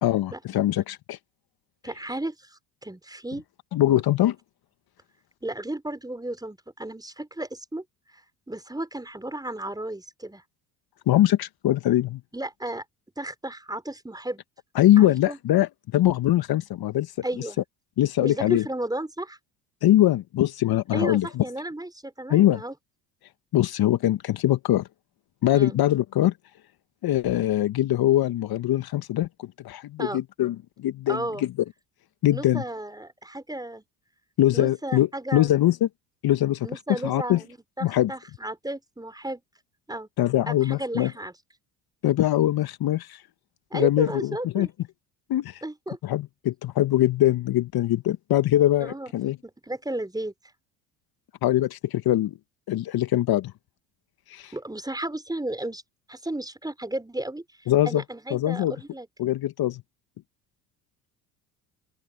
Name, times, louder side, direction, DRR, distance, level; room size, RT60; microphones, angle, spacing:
voice 1, 0.0-1.2 3.7-4.3 11.1-12.2 14.7-17.1 18.0-18.6 19.8-21.4 22.3-22.6 23.5-24.9 25.4-26.3 27.0-31.5 32.2-32.6 34.4-35.9 36.2-37.4 37.8-38.1 40.2-41.1 42.0-43.2 43.7-44.7 45.3-45.6 46.0-49.4 51.4-52.4 52.7-53.5 54.3-54.5 57.7-58.0 58.3-58.7 59.2-59.8, left 13 dB, 50° left, 1.5 m, -22 dB
voice 2, 1.8-3.4 3.8-4.0 5.4-7.8 8.1-8.2 8.5-10.4 12.3-12.8 13.2-14.4 15.0-15.4 17.2-17.6 18.2-19.4 20.9-22.7 25.5-25.8 30.0-30.2 31.1-31.5 32.3-33.8 34.5-35.5 36.6-39.4 39.9-40.1 40.5-41.3 43.7-44.7 45.6-46.0 48.8-49.1 49.4-50.3 54.5-55.8 56.1-59.1, right 1 dB, 10° right, 5.2 m, -34 dB
open air
hypercardioid pair, 60°, 47 cm